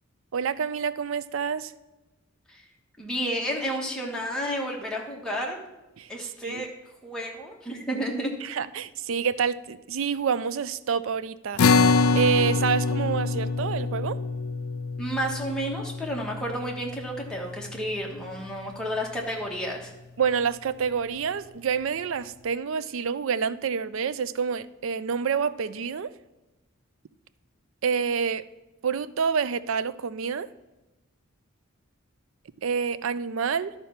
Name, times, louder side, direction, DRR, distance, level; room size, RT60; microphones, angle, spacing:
voice 1, 0.3-1.7 6.0-6.1 6.4-6.6 8.4-11.6 12.1-14.2 20.2-26.1 27.8-28.4 28.8-30.5 32.6-33.7, right 6 dB, 65° right, 15 dB, 0.4 m, -27 dB
voice 2, 3.0-5.6 6.1-6.7 7.0-8.3 15.0-19.9, equal, 5° left, -2 dB, 1.4 m, -31 dB
sound 1, 11.6-18.2, left 4 dB, 80° left, 0.4 m, -25 dB
12.0 x 4.4 x 5.8 m, 1.0 s
head